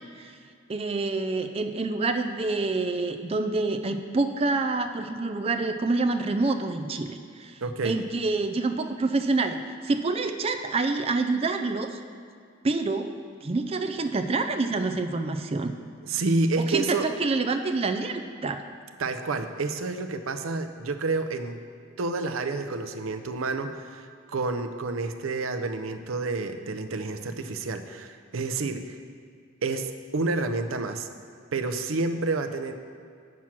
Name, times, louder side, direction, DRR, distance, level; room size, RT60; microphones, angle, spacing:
voice 1, 0.7-7.5 7.8-12.0 12.6-13.1 13.4-15.7 16.7-18.6, right 3 dB, 30° right, 7 dB, 0.4 m, -27 dB
voice 2, 7.6-8.0 16.0-17.1 19.0-21.6 22.0-29.0 29.6-31.1 31.5-32.7, right 3 dB, 85° right, 8 dB, 0.6 m, -29 dB
7.5 x 6.1 x 5.8 m, 2.2 s
head